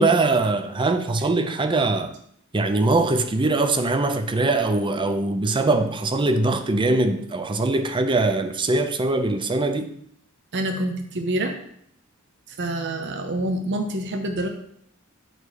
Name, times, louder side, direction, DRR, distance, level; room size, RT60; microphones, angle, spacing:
voice 1, 0.0-2.1 2.5-9.9, right 2 dB, 25° right, 0.5 m, -22 dB
voice 2, 10.5-11.5 12.5-14.5, right 1 dB, 55° right, 0.7 m, -26 dB
8.8 x 3.2 x 4.8 m
head